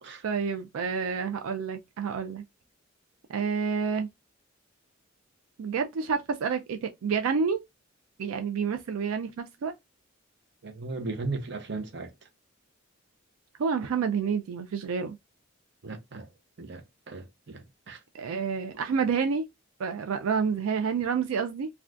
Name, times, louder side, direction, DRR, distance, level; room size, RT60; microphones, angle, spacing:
voice 1, 0.2-2.4 3.3-4.1 5.6-7.6 8.2-9.7 13.6-15.2 18.2-19.5 19.8-21.7, right 6 dB, 90° right, 0.4 m, -29 dB
voice 2, 10.6-12.1 15.8-16.3 16.6-18.0, right 3 dB, 55° right, 0.7 m, -37 dB
2.5 x 2.3 x 3.3 m
head